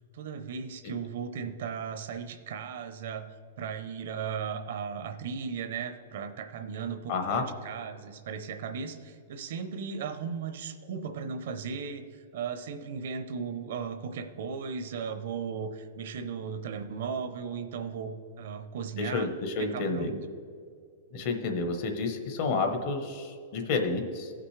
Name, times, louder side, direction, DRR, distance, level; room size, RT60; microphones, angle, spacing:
voice 1, 0.2-3.2 3.6-12.0 12.3-19.3 19.6-20.2, right 6 dB, 60° right, 8 dB, 0.7 m, -36 dB
voice 2, 7.1-7.4 19.0-20.1 21.1-24.3, left 3 dB, 40° left, 5 dB, 1.0 m, -30 dB
16.0 x 5.9 x 3.3 m, 2.4 s
supercardioid pair, 170°, 0 cm